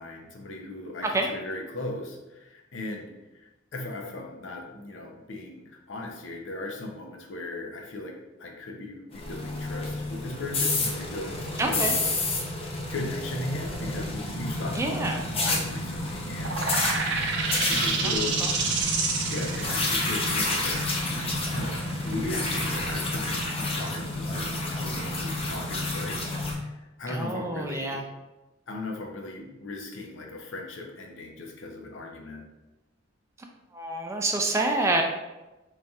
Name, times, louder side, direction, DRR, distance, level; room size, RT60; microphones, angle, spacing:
voice 1, 0.0-11.8 12.9-16.7 17.7-21.1 21.5-26.2 26.5-28.0 28.7-32.4, left 2 dB, 70° left, 1 dB, 0.6 m, -37 dB
sound 1, 9.1-26.5, left 2 dB, 30° left, 0.6 m, -30 dB
voice 2, 11.6-12.0 14.7-15.2 18.0-18.1 18.4-18.5 27.1-28.0 33.7-35.0, right 2 dB, 15° right, 2 dB, 0.3 m, -27 dB
sound 2, 16.4-23.7, right 4 dB, 60° right, 0.6 m, -30 dB
4.0 x 3.2 x 2.3 m, 1.1 s
head